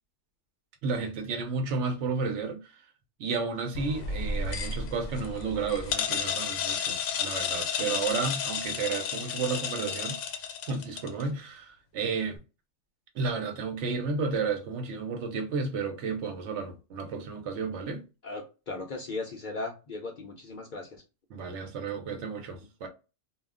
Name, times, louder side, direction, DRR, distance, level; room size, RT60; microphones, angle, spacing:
voice 1, 0.8-2.6 3.2-10.2 10.7-12.4 13.1-18.0 21.3-22.9, right 4 dB, 70° right, 0.9 m, -32 dB
sound 1, 3.7-11.2, left 6 dB, 80° left, 0.9 m, -32 dB
voice 2, 18.2-21.0 22.6-22.7, left 3 dB, 55° left, 0.6 m, -38 dB
2.3 x 2.2 x 3.5 m
omnidirectional pair, 1.2 m